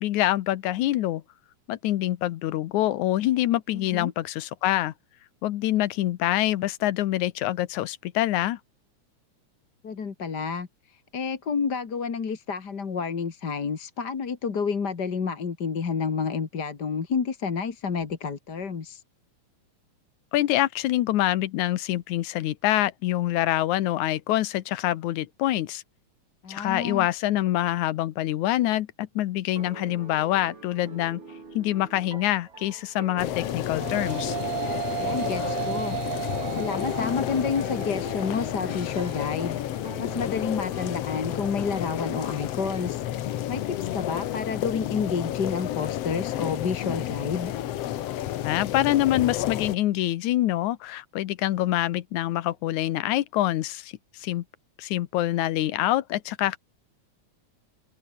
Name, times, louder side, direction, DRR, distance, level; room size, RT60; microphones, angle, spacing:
voice 1, 0.0-1.2 1.7-4.9 5.4-8.6 20.3-25.8 26.5-31.2 31.5-34.4 48.4-54.4 54.8-56.6, left 14 dB, 85° left, 2.4 m, -25 dB
voice 2, 3.7-4.1 9.8-19.0 26.4-27.1 35.0-36.0 36.5-39.6 40.0-47.5, left 5 dB, 40° left, 2.3 m, -30 dB
sound 1, 29.6-43.3, right 4 dB, 70° right, 7.7 m, -45 dB
sound 2, 33.2-49.8, left 12 dB, 65° left, 1.9 m, -31 dB
sound 3, 33.3-42.5, right 15 dB, 90° right, 2.3 m, -36 dB
open air
omnidirectional pair, 3.4 m